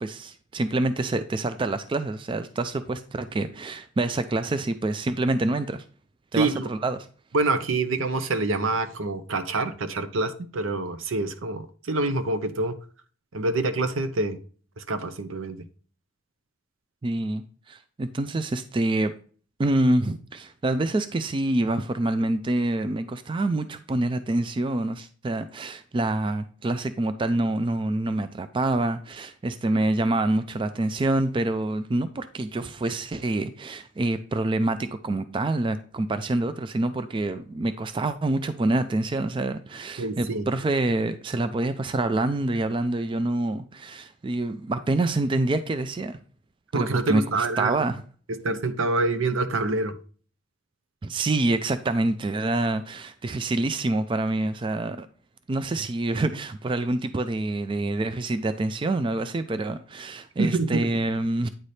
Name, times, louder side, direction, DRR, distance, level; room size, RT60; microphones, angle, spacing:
voice 1, 0.0-5.8 6.3-7.1 17.0-17.4 17.7-19.1 19.6-46.2 46.7-48.0 51.0-55.1 55.5-61.5, right 2 dB, 25° right, 0.3 m, -26 dB
voice 2, 6.3-6.7 7.3-12.8 13.3-14.4 14.8-15.6 40.0-40.5 46.7-47.8 48.3-49.9 60.4-60.9, right 2 dB, 75° right, 0.6 m, -26 dB
9.0 x 4.1 x 3.2 m
head